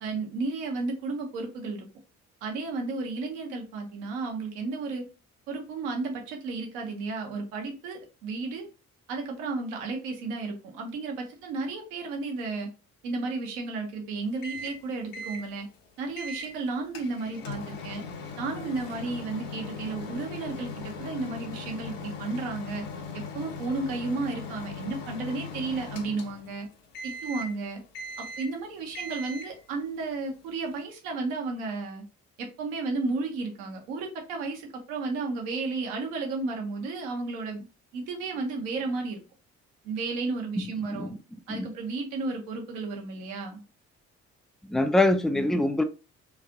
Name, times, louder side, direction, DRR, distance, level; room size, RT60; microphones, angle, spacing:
voice 1, 0.0-1.9 2.4-5.1 5.5-8.7 9.1-12.7 13.0-15.7 16.0-18.0 18.4-22.8 23.1-26.7 27.0-27.8 28.2-32.0 32.4-37.7 37.9-39.2 39.8-41.1 41.5-43.6, right 3 dB, 75° right, 0.8 m, -33 dB
Microwave oven, 14.4-14.8 15.1-15.5 16.2-16.5 16.9-26.6 26.9-27.6 27.9-28.6 28.9-29.6, left 3 dB, 60° left, 0.7 m, -39 dB
voice 2, 40.6-41.2 41.5-41.7 44.6-45.8, left 2 dB, ahead, 0.3 m, -25 dB
3.2 x 2.4 x 2.5 m
figure-of-eight pair, 40°, 39 cm